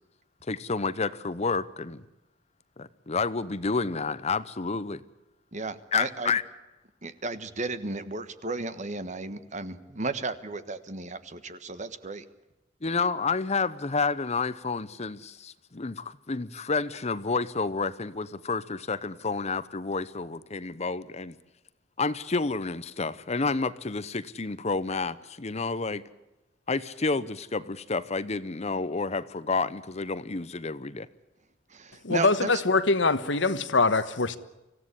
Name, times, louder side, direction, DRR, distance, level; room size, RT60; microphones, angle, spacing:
voice 1, 0.5-2.0 2.8-5.0 5.9-6.4 12.8-21.3 22.0-26.0 26.7-31.1, left 4 dB, 35° left, 0.8 m, -30 dB
voice 2, 5.5-6.3 7.0-12.2 31.7-32.5, right 3 dB, 40° right, 1.4 m, -34 dB
voice 3, 32.0-34.4, left 3 dB, 75° left, 1.3 m, -23 dB
25.5 x 16.0 x 9.9 m
head